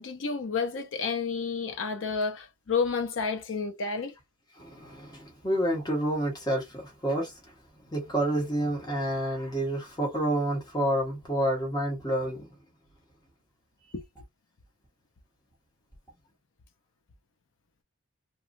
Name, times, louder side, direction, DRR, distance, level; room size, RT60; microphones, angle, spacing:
voice 1, 0.0-4.2 13.9-14.0, left 5 dB, 70° left, 0.6 m, -30 dB
voice 2, 4.6-7.3 7.9-12.5, right 1 dB, 20° left, 1.1 m, -29 dB
3.0 x 2.3 x 2.5 m
head